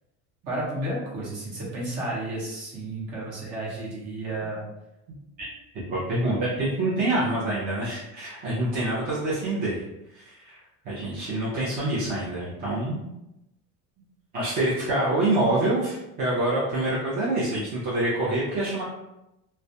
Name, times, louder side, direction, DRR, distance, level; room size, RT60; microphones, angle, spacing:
voice 1, 0.5-4.6, right 1 dB, 45° right, -5 dB, 1.0 m, -32 dB
voice 2, 5.7-9.8 10.1-10.6 10.8-13.0 14.3-18.8, right 1 dB, 30° right, -8 dB, 0.5 m, -26 dB
2.3 x 2.1 x 2.6 m, 0.90 s
cardioid pair, 170°, 35 cm